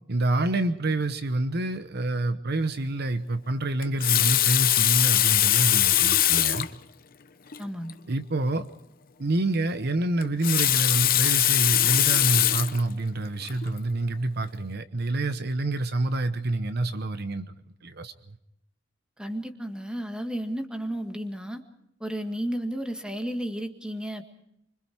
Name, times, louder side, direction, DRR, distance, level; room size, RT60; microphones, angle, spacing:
voice 1, 0.1-6.7 8.1-8.7 9.2-17.5 17.8-18.1, right 2 dB, 55° right, 11 dB, 0.9 m, -27 dB
Water tap faucet, 3.8-6.7 7.5-7.6 7.9-8.0 10.2-12.8 13.5-13.7, left 13 dB, 50° left, 0.8 m, -22 dB
voice 2, 7.6-7.9 19.2-21.6 22.0-24.2, equal, 5° right, 5 dB, 1.8 m, -32 dB
25.5 x 25.0 x 4.6 m, 0.78 s
head